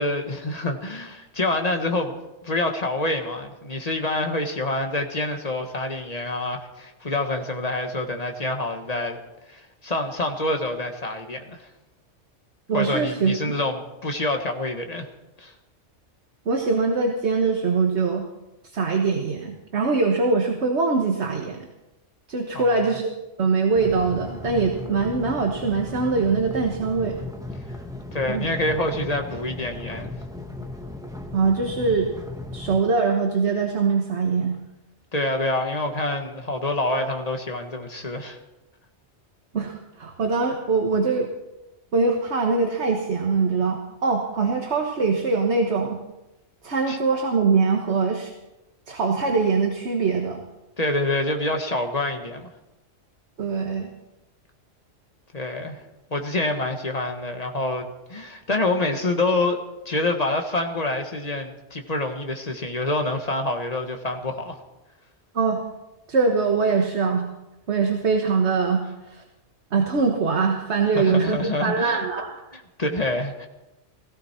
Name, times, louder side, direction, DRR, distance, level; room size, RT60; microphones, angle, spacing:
voice 1, 0.0-2.2 2.4-9.2 9.5-11.7 12.7-15.1 15.4-15.5 22.5-23.0 28.1-30.1 35.1-38.4 46.9-47.0 50.8-52.5 55.3-55.8 56.1-59.6 59.8-64.6 70.9-72.0 72.5-73.5, left 2 dB, 30° left, 4 dB, 1.6 m, -27 dB
voice 2, 12.7-13.3 16.4-18.2 18.7-21.6 22.3-23.1 23.4-27.2 28.3-28.5 31.3-32.1 32.5-34.6 39.5-41.3 41.9-46.0 46.6-48.3 48.9-50.4 53.4-53.9 65.3-65.6 66.1-67.3 67.7-68.8 69.1-69.2 69.7-72.4, right 4 dB, 65° right, 2 dB, 1.6 m, -22 dB
sound 1, 23.7-32.8, left 2 dB, 5° right, 1.2 m, -36 dB
17.0 x 16.5 x 4.5 m, 0.98 s
omnidirectional pair, 1.3 m